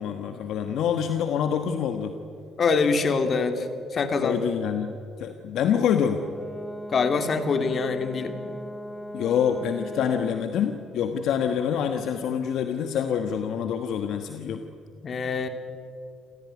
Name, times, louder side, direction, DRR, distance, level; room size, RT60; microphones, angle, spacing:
voice 1, 0.0-2.2 4.2-6.2 9.1-14.6, left 8 dB, 75° left, 7 dB, 1.3 m, -26 dB
voice 2, 2.6-3.7 3.9-4.4 6.9-8.3 15.0-15.5, left 4 dB, 50° left, 7 dB, 2.9 m, -24 dB
Brass instrument, 6.1-10.5, equal, 5° left, 2.9 m, -38 dB
28.5 x 16.5 x 9.6 m, 2.5 s
supercardioid pair, 70°, 0 cm